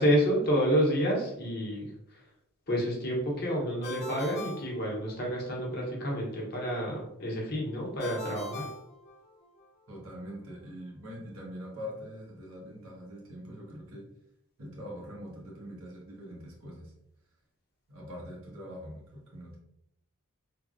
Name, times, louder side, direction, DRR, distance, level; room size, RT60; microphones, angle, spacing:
voice 1, 0.0-2.2 2.7-8.7, equal, 45° left, -2 dB, 0.8 m, -29 dB
Ringtone, 3.8-5.5 8.0-9.7, left 2 dB, 30° left, 0.3 m, -42 dB
voice 2, 9.9-14.1 14.6-16.9 17.9-19.6, equal, 85° right, -3 dB, 1.0 m, -43 dB
3.2 x 2.1 x 2.4 m, 0.77 s
head